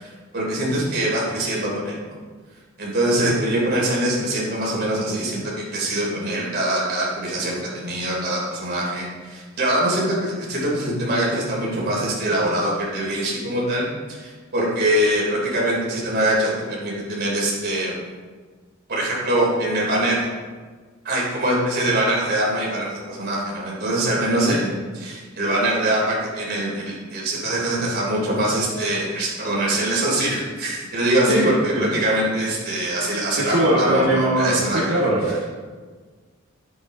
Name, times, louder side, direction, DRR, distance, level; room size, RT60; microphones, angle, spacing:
voice 1, 0.0-2.0 2.8-17.9 18.9-20.3 21.0-35.1, right 1 dB, 50° right, -4 dB, 3.4 m, -23 dB
voice 2, 24.3-24.6 31.3-32.0 33.4-35.4, right 1 dB, 65° right, -7 dB, 1.6 m, -21 dB
10.5 x 8.1 x 3.9 m, 1.5 s
head